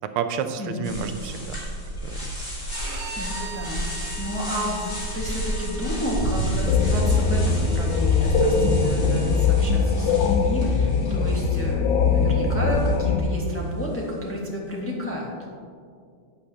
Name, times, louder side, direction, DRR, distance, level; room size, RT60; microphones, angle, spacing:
voice 1, 0.0-1.6 2.0-2.5, right 7 dB, 85° right, 8 dB, 1.5 m, -30 dB
voice 2, 0.6-1.0 3.1-15.3, left 1 dB, 10° left, -4 dB, 1.0 m, -31 dB
sound 1, 0.8-13.4, right 1 dB, 25° left, 1.9 m, -32 dB
Bowed string instrument, 2.7-9.4, right 2 dB, 65° right, 2.1 m, -42 dB
sound 2, 6.6-13.2, left 4 dB, 65° left, 1.3 m, -21 dB
11.0 x 9.0 x 2.8 m, 2.2 s
omnidirectional pair, 2.4 m